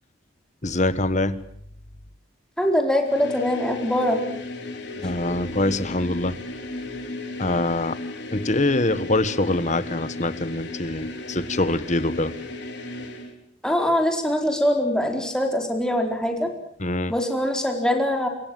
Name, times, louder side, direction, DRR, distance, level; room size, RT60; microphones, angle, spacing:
voice 1, 0.6-1.4 5.0-6.3 7.4-8.0 8.3-12.3 16.8-17.1, left 2 dB, 35° left, 13 dB, 1.5 m, -24 dB
voice 2, 2.6-4.2 13.6-16.5 17.1-18.3, equal, 5° left, 3 dB, 4.4 m, -23 dB
sound 1, 3.0-13.3, left 2 dB, 60° left, 4.6 m, -35 dB
27.5 x 23.5 x 7.8 m, 0.66 s
head